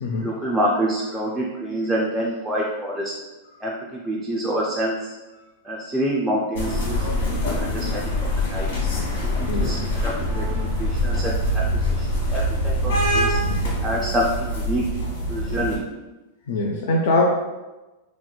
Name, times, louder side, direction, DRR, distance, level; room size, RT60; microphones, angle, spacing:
voice 1, 0.2-3.1 3.6-5.2 5.6-8.7 9.4-13.4 13.8-14.9 15.3-15.8, equal, 5° right, -4 dB, 0.3 m, -27 dB
sound 1, 6.5-15.8, equal, 90° left, 1.1 m, -24 dB
voice 2, 9.5-9.8 16.5-17.2, left 2 dB, 65° left, -1 dB, 0.4 m, -22 dB
3.4 x 3.0 x 2.2 m, 1.1 s
supercardioid pair, 170°, 0 cm